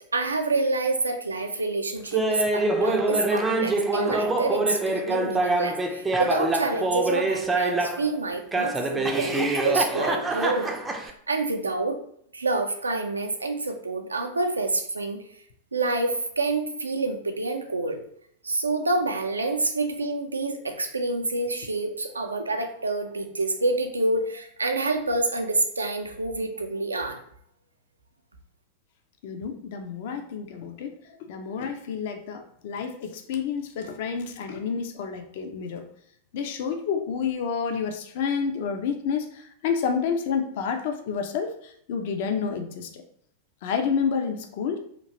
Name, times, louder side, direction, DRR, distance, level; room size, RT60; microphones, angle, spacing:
voice 1, 0.1-10.7 11.3-12.0 12.3-15.2 15.7-18.0 18.4-27.2, right 2 dB, 80° right, 5 dB, 0.4 m, -27 dB
Laughter, 2.1-8.1 8.5-11.1, right 2 dB, 15° right, 0.4 m, -25 dB
voice 2, 29.2-35.9 36.3-43.0 43.6-44.8, left 6 dB, 50° left, 6 dB, 0.4 m, -29 dB
2.9 x 2.4 x 2.8 m, 0.66 s
figure-of-eight pair, 90°, 0 cm